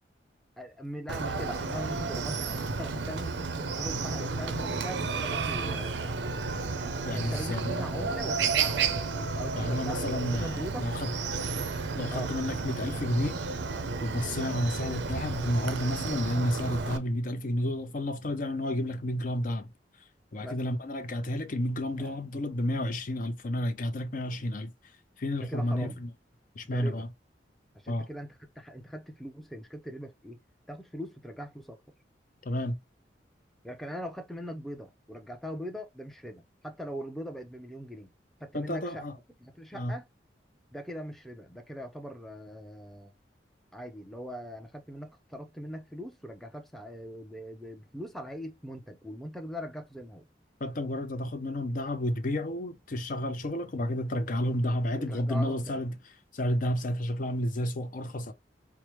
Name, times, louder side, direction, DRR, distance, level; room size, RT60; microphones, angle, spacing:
voice 1, 0.6-6.5 7.1-9.1 9.3-10.9 12.1-12.3 20.4-20.6 22.0-22.1 25.4-26.0 26.6-27.0 27.7-30.4 30.7-31.8 33.6-38.1 38.4-39.0 39.4-40.1 40.7-43.1 43.7-50.3 55.0-55.8, equal, ahead, 0.5 m, -41 dB
Chicken rooster, 1.1-17.0, right 4 dB, 75° right, 0.6 m, -32 dB
voice 2, 7.0-7.9 9.6-11.1 11.9-13.4 14.0-19.7 20.3-24.7 25.2-26.1 26.6-27.1 27.9-28.1 32.4-32.8 38.5-39.2 39.7-40.0 50.6-56.0 56.3-58.3, left 1 dB, 50° left, 0.6 m, -31 dB
4.7 x 2.0 x 3.0 m
head